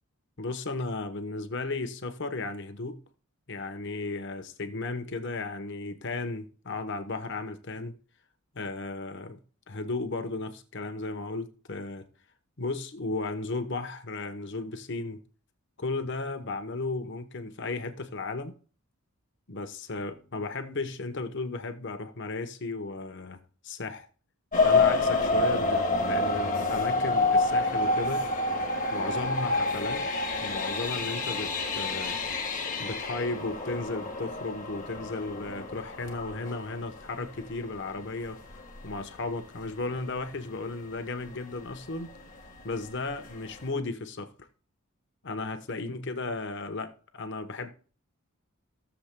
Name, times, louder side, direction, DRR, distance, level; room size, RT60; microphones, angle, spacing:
voice 1, 0.4-3.0 3.5-8.0 8.5-9.4 9.7-12.1 12.6-15.2 15.8-18.5 19.5-24.1 24.6-28.3 28.9-30.1 30.4-32.2 32.8-38.4 38.8-42.1 42.6-44.3 45.2-47.7, left 3 dB, 55° left, 1.0 m, -35 dB
sound 1, 24.5-37.2 37.8-37.9 38.4-38.5 38.9-39.0, left 3 dB, 35° left, 1.6 m, -28 dB
16.5 x 7.1 x 2.2 m
head